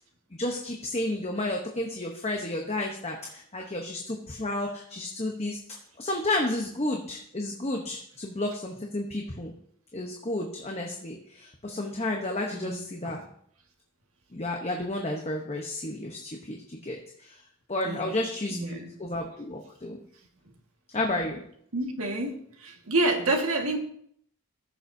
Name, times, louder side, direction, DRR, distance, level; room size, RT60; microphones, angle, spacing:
voice 1, 0.4-5.6 6.0-9.5 9.9-13.2 14.3-17.4 17.7-20.0 20.9-21.4, left 1 dB, 30° left, 1 dB, 0.9 m, -32 dB
voice 2, 12.5-13.1 17.8-18.2 18.5-18.9 21.7-23.8, right 2 dB, 80° right, 2 dB, 1.7 m, -29 dB
15.0 x 6.9 x 2.7 m, 0.64 s
head